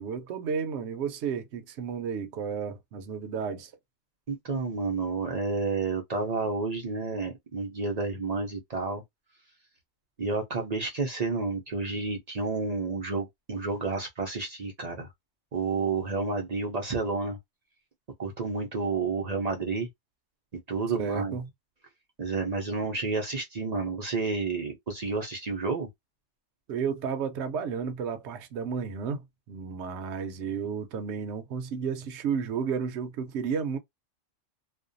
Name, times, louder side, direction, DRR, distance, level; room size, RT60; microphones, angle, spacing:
voice 1, 0.0-3.7 21.0-21.5 26.7-33.8, right 6 dB, 70° right, 0.8 m, -32 dB
voice 2, 4.3-9.0 10.2-15.1 15.5-17.4 18.2-19.9 20.7-21.4 22.2-25.9, right 3 dB, 50° right, 0.5 m, -30 dB
2.5 x 2.2 x 2.5 m
omnidirectional pair, 1.3 m